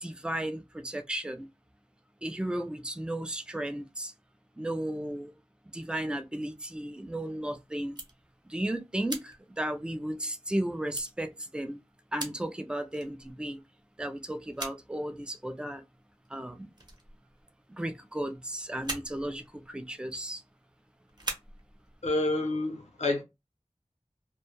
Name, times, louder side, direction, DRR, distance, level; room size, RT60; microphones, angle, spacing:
voice 1, 0.0-1.5 2.2-4.1 4.6-5.3 5.7-8.0 8.5-11.8 12.1-13.6 14.0-15.8 16.3-16.7 17.8-20.4, right 1 dB, 10° right, 0.3 m, -34 dB
sound 1, 6.5-7.4 7.8-8.6 9.1-10.5 10.9-11.1 11.8-11.9 12.2-12.5 12.9-13.7 14.2-14.9 15.2-15.6 16.2-16.5 16.7-17.8 18.1-18.4 18.6-20.8 21.1-22.1, right 2 dB, 35° right, 0.8 m, -42 dB
voice 2, 22.0-23.2, left 2 dB, 70° left, 0.7 m, -28 dB
2.2 x 2.0 x 2.9 m
wide cardioid pair, 45°, 12 cm